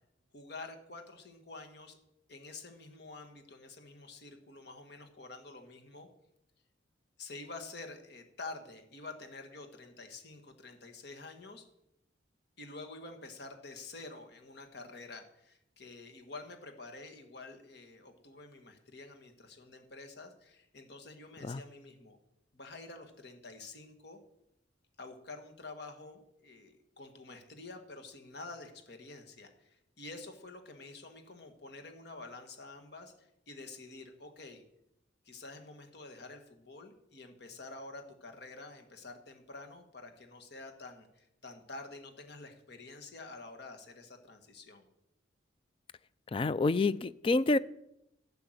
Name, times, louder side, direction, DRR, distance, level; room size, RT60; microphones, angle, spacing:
voice 1, 0.3-2.0 2.3-6.1 7.2-11.7 12.6-22.2 22.5-24.2 25.0-34.6 35.2-44.9, left 3 dB, 55° left, 5 dB, 1.5 m, -48 dB
voice 2, 46.3-47.6, left 3 dB, 30° left, 17 dB, 0.3 m, -28 dB
11.5 x 5.8 x 7.8 m, 0.80 s
head